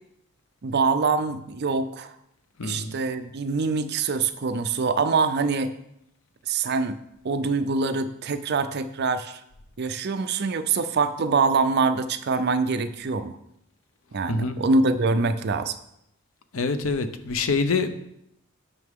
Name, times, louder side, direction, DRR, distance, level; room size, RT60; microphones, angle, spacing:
voice 1, 0.6-2.1 2.6-5.7 6.5-7.0 7.2-9.4 9.8-13.4 14.1-15.7, right 4 dB, 50° right, 10 dB, 0.5 m, -24 dB
voice 2, 2.6-2.9 14.3-14.6 16.5-17.9, left 4 dB, 70° left, 9 dB, 0.7 m, -25 dB
9.6 x 5.8 x 3.6 m, 0.80 s
head